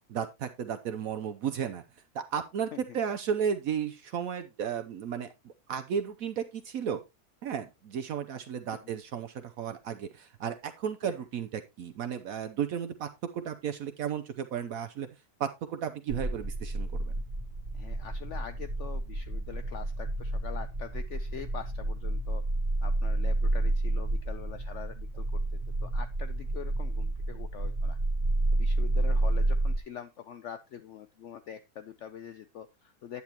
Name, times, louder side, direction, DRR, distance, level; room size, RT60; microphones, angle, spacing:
voice 1, 0.1-1.8 2.1-7.0 7.4-15.1 15.4-17.1, right 8 dB, 70° right, 8 dB, 1.1 m, -34 dB
sound 1, 16.1-29.8, right 2 dB, 50° right, 2.0 m, -30 dB
voice 2, 17.7-22.4 22.8-25.4 25.8-28.0 28.5-33.2, left 9 dB, 60° left, 11 dB, 0.8 m, -44 dB
9.6 x 8.8 x 2.9 m, 0.23 s
omnidirectional pair, 1.6 m